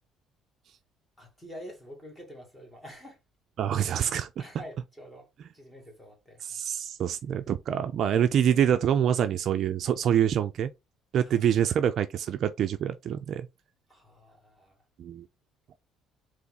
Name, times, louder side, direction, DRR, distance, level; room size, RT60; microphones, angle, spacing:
voice 1, 1.2-3.2 4.4-5.3 5.5-6.5 11.2-11.4 13.9-14.8, equal, 10° left, 1.7 m, -47 dB
voice 2, 3.6-4.3 6.4-10.7 11.1-13.5 15.0-15.2, right 9 dB, 45° right, 0.4 m, -26 dB
4.1 x 3.0 x 3.8 m
cardioid pair, 160°, 0 cm